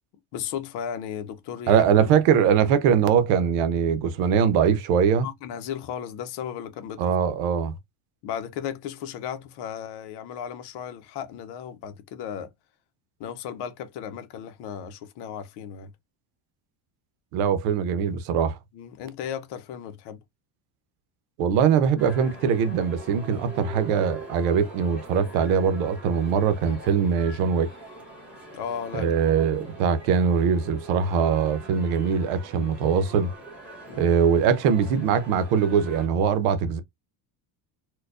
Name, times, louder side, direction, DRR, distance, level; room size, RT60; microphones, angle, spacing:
voice 1, 0.3-2.1 5.2-7.2 8.2-12.5 13.2-15.9 18.7-20.2 28.5-29.5 33.9-34.1, left 8 dB, 55° left, 0.7 m, -35 dB
voice 2, 1.7-5.3 7.0-7.7 17.3-18.6 21.4-27.7 28.9-33.3 34.0-36.8, right 7 dB, 90° right, 0.9 m, -22 dB
sound 1, 22.0-36.1, right 2 dB, 5° right, 1.1 m, -43 dB
4.5 x 2.3 x 2.4 m
cardioid pair, 170°, 49 cm